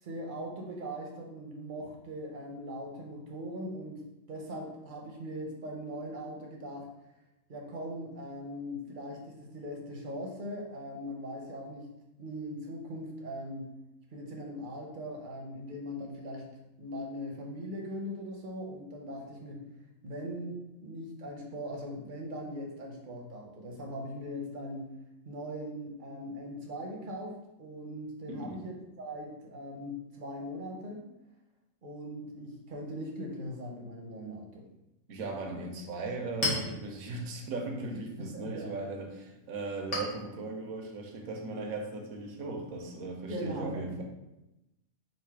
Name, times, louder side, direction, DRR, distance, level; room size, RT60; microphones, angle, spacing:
voice 1, 0.0-4.0 4.3-6.9 7.5-11.9 12.2-13.7 14.1-19.7 20.0-25.0 25.3-31.1 31.8-34.7 38.2-38.7 43.3-43.9, equal, 45° right, 0 dB, 0.8 m, -40 dB
voice 2, 28.3-28.6 35.1-44.0, right 3 dB, 75° right, 2 dB, 1.2 m, -38 dB
Chink clink, 35.8-43.0, left 2 dB, 90° left, 1.7 m, -41 dB
4.0 x 2.6 x 4.6 m, 0.94 s
omnidirectional pair, 1.5 m